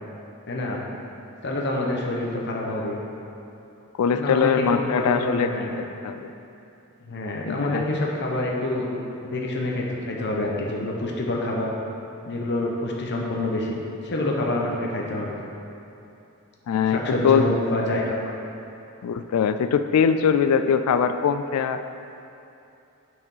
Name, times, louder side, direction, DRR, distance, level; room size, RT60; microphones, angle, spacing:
voice 1, 0.5-0.8 1.4-3.0 4.1-5.8 7.1-8.9 9.2-11.7 12.3-13.8 14.0-15.3 16.9-18.2, left 2 dB, 55° left, -1 dB, 0.9 m, -27 dB
voice 2, 4.0-5.5 6.0-6.3 7.5-7.8 16.7-17.5 19.0-21.8, left 6 dB, 80° left, 10 dB, 0.3 m, -22 dB
8.1 x 4.8 x 5.6 m, 2.8 s
head